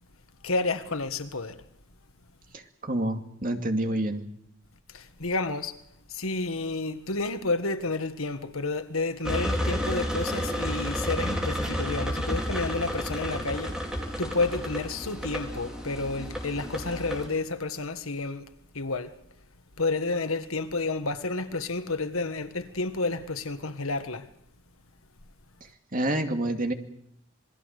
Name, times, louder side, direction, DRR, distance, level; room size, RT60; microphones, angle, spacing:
voice 1, 0.4-1.5 4.9-5.7 6.1-13.7 14.2-18.5 18.7-19.1 19.8-24.2, left 3 dB, 85° left, 1.6 m, -30 dB
voice 2, 2.5-4.2 25.9-26.7, right 1 dB, 40° right, 2.4 m, -28 dB
sound 1, 9.2-17.3, equal, 5° right, 4.4 m, -31 dB
27.5 x 21.0 x 6.6 m
head